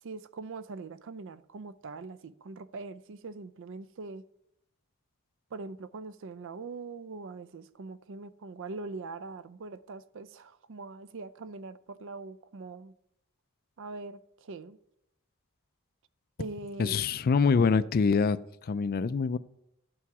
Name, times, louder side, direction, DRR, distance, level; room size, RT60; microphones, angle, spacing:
voice 1, 0.0-4.2 5.5-12.9 13.8-14.8 16.4-17.1, right 3 dB, 60° right, 0.5 m, -42 dB
voice 2, 16.8-19.4, left 5 dB, 45° left, 0.4 m, -25 dB
12.0 x 8.5 x 4.8 m
head